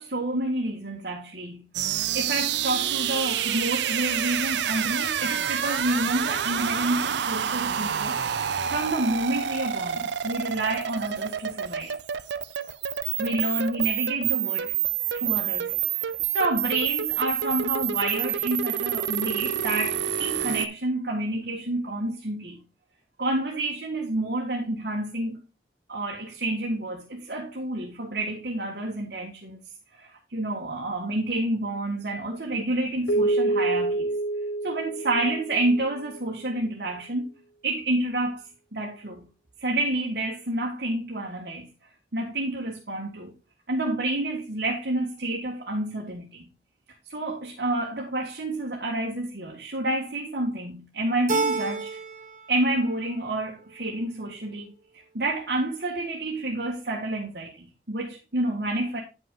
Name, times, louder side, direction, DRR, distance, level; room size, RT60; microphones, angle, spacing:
voice 1, 0.0-1.7 2.1-8.2 8.7-11.9 13.2-14.7 15.1-22.6 23.2-25.4 25.9-29.6 29.9-34.1 34.6-37.3 37.6-38.4 38.7-39.3 39.6-41.7 42.1-43.3 43.7-46.4 47.1-51.9 52.5-54.7 55.1-59.0, right 1 dB, 65° right, 1.5 m, -29 dB
sound 1, 1.7-20.7, right 9 dB, 85° right, 0.5 m, -28 dB
Keyboard (musical), 33.1-36.1, right 2 dB, 65° left, 0.6 m, -27 dB
Keyboard (musical) 2, 51.3-52.4 52.7-53.5, right 3 dB, 45° right, 1.3 m, -29 dB
8.8 x 5.8 x 3.7 m
head